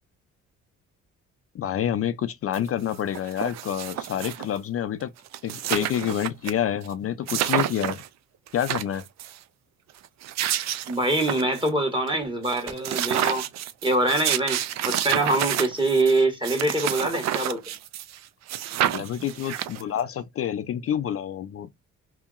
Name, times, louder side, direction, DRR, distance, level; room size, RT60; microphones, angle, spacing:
voice 1, 1.5-5.1 5.4-8.0 8.5-9.0 18.9-21.7, left 10 dB, 50° left, 0.4 m, -28 dB
sound 1, 2.5-2.6 2.9-4.6 5.0-5.1 5.3-6.5 6.8-6.9 7.3-8.1 8.5-9.4 10.0-11.7 12.1-12.2 12.4-18.2 18.5-20.0, right 12 dB, 65° right, 0.4 m, -29 dB
voice 2, 10.9-13.5 13.8-17.7, right 2 dB, 15° right, 1.3 m, -24 dB
2.9 x 2.7 x 2.4 m
cardioid pair, 90°, 30 cm